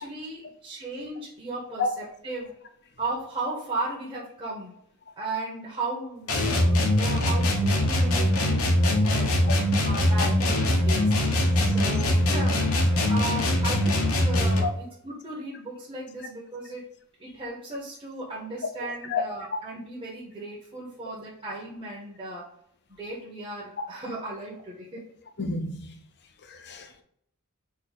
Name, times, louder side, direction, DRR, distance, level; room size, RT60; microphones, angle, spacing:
voice 1, 0.0-2.5 3.0-4.7 5.2-9.4 9.8-11.2 11.6-12.7 13.1-16.8 17.2-22.5 23.0-25.1, right 2 dB, 25° right, 1.1 m, -36 dB
sound 1, 6.3-14.7, left 1 dB, 75° left, 1.0 m, -22 dB
voice 2, 25.4-26.0 26.4-27.0, left 4 dB, 50° left, 0.7 m, -30 dB
4.3 x 2.8 x 4.1 m
head